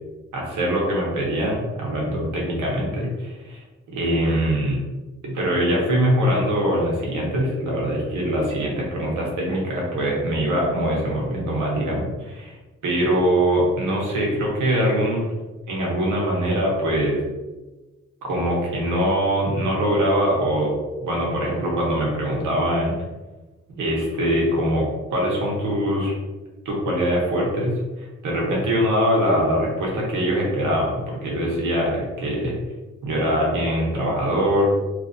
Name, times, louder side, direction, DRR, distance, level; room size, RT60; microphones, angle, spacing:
voice 1, 0.3-3.6 3.9-4.8 5.2-12.6 12.8-15.2 15.7-17.2 18.2-20.7 21.0-23.0 23.8-26.1 26.6-32.5 33.0-34.7, equal, 80° right, -3 dB, 1.0 m, -23 dB
2.9 x 2.6 x 2.6 m, 1.2 s
wide cardioid pair, 140°, 30 cm